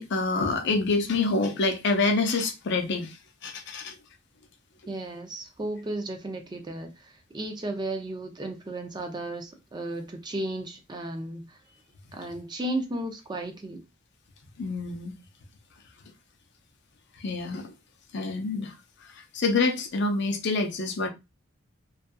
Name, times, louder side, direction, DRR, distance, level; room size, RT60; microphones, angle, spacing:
voice 1, 0.0-3.2 3.4-3.9 14.6-15.1 17.2-17.7 18.1-18.7 19.1-21.1, left 3 dB, 60° left, 0.5 m, -27 dB
voice 2, 4.9-11.6 12.1-13.8, right 1 dB, 20° right, 0.4 m, -34 dB
2.6 x 2.3 x 2.2 m
head